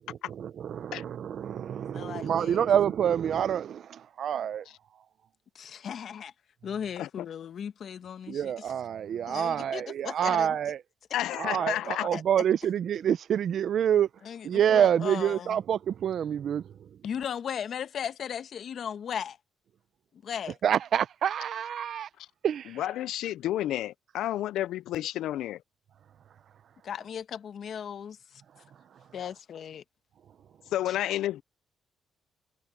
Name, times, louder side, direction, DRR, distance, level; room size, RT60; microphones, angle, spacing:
voice 1, 0.3-4.6 8.3-10.8 11.4-14.1 14.4-16.9 20.6-22.1 22.4-22.8, right 9 dB, 65° right, 0.7 m, -27 dB
voice 2, 1.9-2.7 5.5-6.3 6.6-8.7 9.3-10.5 12.1-12.2 14.2-15.6 17.0-19.4 20.1-20.6 26.8-28.4 29.1-29.8 30.9-31.0, left 8 dB, 60° left, 1.1 m, -37 dB
voice 3, 11.1-12.1 22.2-22.3 22.8-25.6 30.7-31.4, left 13 dB, 85° left, 0.4 m, -31 dB
cardioid pair, 90°, 0 cm